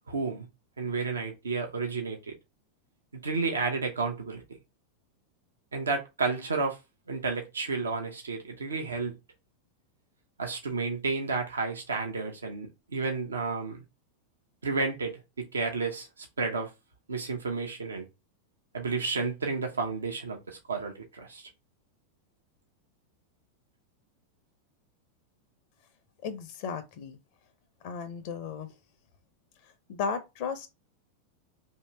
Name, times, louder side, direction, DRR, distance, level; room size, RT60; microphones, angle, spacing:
voice 1, 0.1-0.5 0.8-2.2 3.1-4.4 5.7-6.8 7.1-9.1 10.4-13.8 14.6-16.7 17.1-18.1 18.7-21.5, right 4 dB, 70° right, 0.8 m, -31 dB
voice 2, 26.2-27.2 27.8-28.7 29.9-30.7, left 5 dB, 45° left, 0.6 m, -35 dB
3.0 x 2.8 x 4.4 m
figure-of-eight pair, 90°, 0 cm